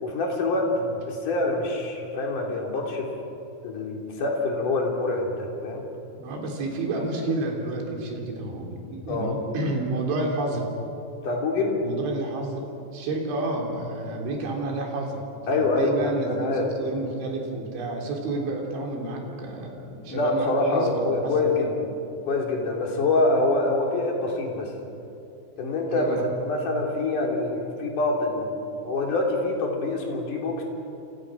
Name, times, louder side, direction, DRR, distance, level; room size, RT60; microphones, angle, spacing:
voice 1, 0.0-0.7 1.1-3.1 3.6-5.8 9.1-9.3 11.2-11.8 15.5-16.7 20.1-21.9 22.2-24.7 25.6-26.1 26.4-30.6, left 2 dB, 45° left, 0 dB, 4.6 m, -25 dB
voice 2, 6.2-10.7 11.8-12.7 12.9-15.2 15.4-21.7 25.9-26.3, right 2 dB, 85° right, 1 dB, 6.0 m, -30 dB
28.5 x 28.0 x 6.4 m, 2.8 s
omnidirectional pair, 5.2 m